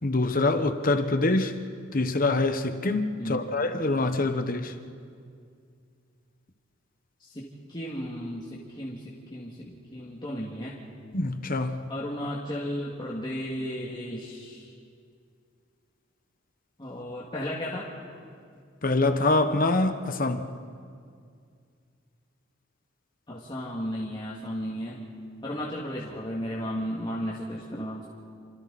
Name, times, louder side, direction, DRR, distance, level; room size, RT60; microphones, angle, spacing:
voice 1, 0.0-1.6 1.9-4.7 11.1-11.9 18.8-20.5, left 2 dB, 45° left, 1.2 m, -25 dB
voice 2, 7.2-10.8 11.9-14.7 16.8-17.9 23.3-25.0 25.4-28.1, equal, 25° left, 2.3 m, -34 dB
29.5 x 25.5 x 4.2 m
head